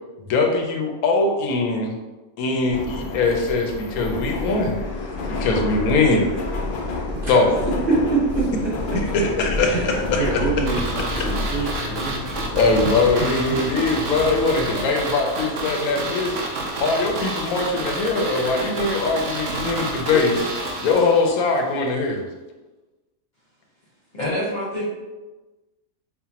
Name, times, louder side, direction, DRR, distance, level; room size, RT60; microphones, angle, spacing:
voice 1, 0.3-2.0 2.4-4.8 5.3-6.3 7.3-7.6 9.1-10.5 11.6-11.7 12.2-16.5 16.8-20.3 20.8-22.2, left 3 dB, 90° left, 3 dB, 1.1 m, -21 dB
Subway metro underground, 2.7-14.7, left 2 dB, 75° left, 0.4 m, -29 dB
voice 2, 7.9-8.5 9.7-12.6, right 3 dB, 40° right, -8 dB, 1.3 m, -25 dB
sound 1, 10.7-21.6 21.9-22.0, right 2 dB, 60° right, 0.8 m, -29 dB
voice 3, 24.1-24.8, left 1 dB, 40° left, -6 dB, 0.7 m, -26 dB
5.5 x 2.1 x 2.8 m, 1.2 s
omnidirectional pair, 1.5 m